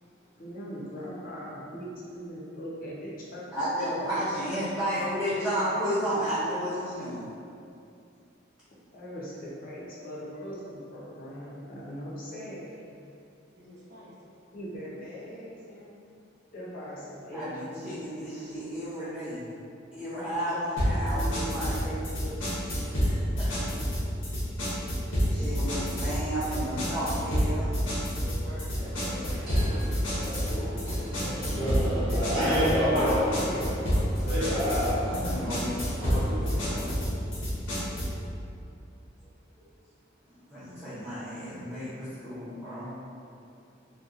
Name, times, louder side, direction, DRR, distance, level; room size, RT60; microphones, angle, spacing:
voice 1, 0.4-3.9 8.9-12.9 14.5-16.0 16.5-18.2 20.1-23.1, equal, 45° left, -7 dB, 0.6 m, -40 dB
voice 2, 3.5-7.2 17.3-19.5 19.9-21.8 22.9-23.7 25.3-27.7 35.0-37.0 40.3-42.9, equal, ahead, -15 dB, 0.5 m, -33 dB
voice 3, 13.5-14.1 18.3-18.7 25.2-26.8 28.2-29.9 31.3-32.4, equal, 60° right, -7 dB, 0.6 m, -46 dB
sound 1, 20.8-38.2, equal, 90° left, 0.8 m, -29 dB
sound 2, 28.7-36.9, equal, 25° right, 0.9 m, -30 dB
2.7 x 2.2 x 2.4 m, 2.5 s
head